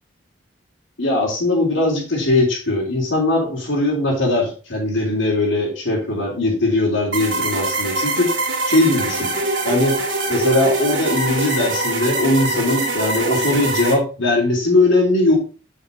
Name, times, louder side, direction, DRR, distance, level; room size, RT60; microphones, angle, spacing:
voice 1, 1.0-8.3 8.7-9.3 9.6-10.0 10.3-15.4, left 2 dB, 80° left, -3 dB, 3.6 m, -19 dB
sound 1, 7.1-13.9, right 2 dB, 65° right, 2.5 m, -23 dB
7.8 x 5.8 x 4.2 m, 0.35 s
head